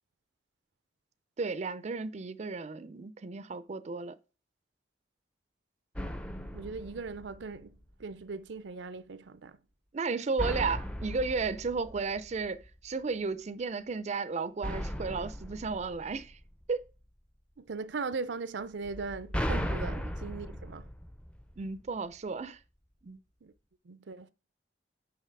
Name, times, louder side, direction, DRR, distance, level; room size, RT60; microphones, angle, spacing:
voice 1, 1.4-4.2 9.9-16.4 16.7-16.8 21.6-22.6 23.0-23.2, right 4 dB, 40° right, 0.4 m, -34 dB
sound 1, 5.9-7.8 10.4-12.8 14.6-16.9 18.8-21.9, equal, 5° left, 0.6 m, -37 dB
voice 2, 6.5-9.6 17.6-20.9 23.4-23.5 23.8-24.3, right 4 dB, 85° right, 0.5 m, -39 dB
6.6 x 5.7 x 4.6 m
head